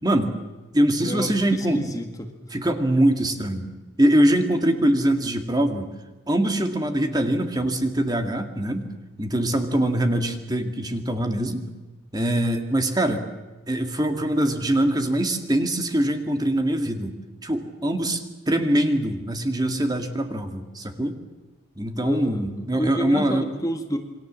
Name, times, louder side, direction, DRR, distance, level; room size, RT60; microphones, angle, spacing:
voice 1, 0.0-0.3 0.7-1.8 2.5-3.7 4.0-5.9 6.3-8.9 9.2-11.7 12.1-13.2 13.7-17.1 17.4-21.2 21.8-23.5, right 1 dB, 20° right, 5 dB, 2.1 m, -23 dB
voice 2, 1.0-2.8 22.0-24.0, equal, 15° left, 5 dB, 1.8 m, -30 dB
28.0 x 23.0 x 7.5 m, 1.2 s
head